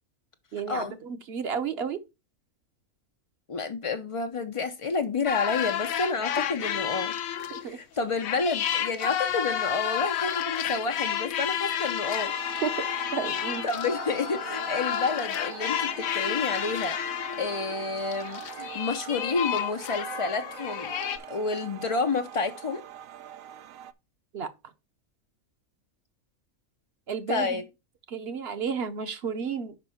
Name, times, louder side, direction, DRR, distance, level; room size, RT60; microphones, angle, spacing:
voice 1, 0.5-2.0 7.5-7.8 12.6-12.8 13.1-13.6 24.3-24.5 27.1-27.6 28.1-29.8, right 6 dB, 55° right, 0.9 m, -32 dB
voice 2, 3.5-7.2 7.7-12.3 13.6-17.1 17.4-20.9 21.3-22.8 27.3-27.6, left 4 dB, 60° left, 0.3 m, -30 dB
sound 1, 5.3-7.8 8.2-21.2, left 9 dB, 90° left, 1.2 m, -31 dB
sound 2, 12.0-23.9, right 9 dB, 90° right, 1.0 m, -42 dB
5.3 x 5.2 x 5.7 m
omnidirectional pair, 1.4 m